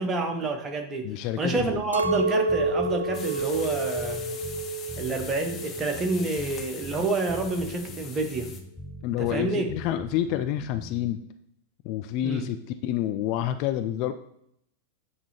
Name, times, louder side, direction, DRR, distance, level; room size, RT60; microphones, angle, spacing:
voice 1, 0.0-4.4 5.0-8.5 9.2-9.7 12.2-12.5, right 3 dB, 25° right, 4 dB, 1.0 m, -28 dB
voice 2, 1.0-1.8 9.0-11.2 11.8-14.1, left 12 dB, 45° left, 9 dB, 0.4 m, -28 dB
sound 1, 1.6-11.2, left 1 dB, 5° right, 0.6 m, -42 dB
Chink clink, 1.9-6.3 6.5-7.4, right 2 dB, 80° right, 0.3 m, -29 dB
sound 2, 3.1-8.6, left 6 dB, 25° left, 0.8 m, -42 dB
8.2 x 2.8 x 4.2 m, 0.73 s
figure-of-eight pair, 90°, 0 cm